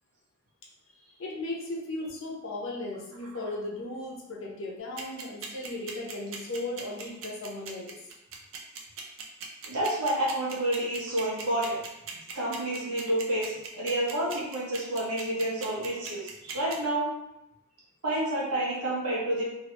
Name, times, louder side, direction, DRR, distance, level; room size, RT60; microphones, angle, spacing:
voice 1, 1.2-8.0, left 2 dB, 60° left, -2 dB, 0.7 m, -36 dB
sound 1, 5.0-16.7, right 6 dB, 60° right, 0.5 m, -39 dB
voice 2, 9.7-11.8 12.3-17.1 18.0-19.5, right 1 dB, 90° right, -5 dB, 1.1 m, -29 dB
3.0 x 2.5 x 2.9 m, 0.89 s
head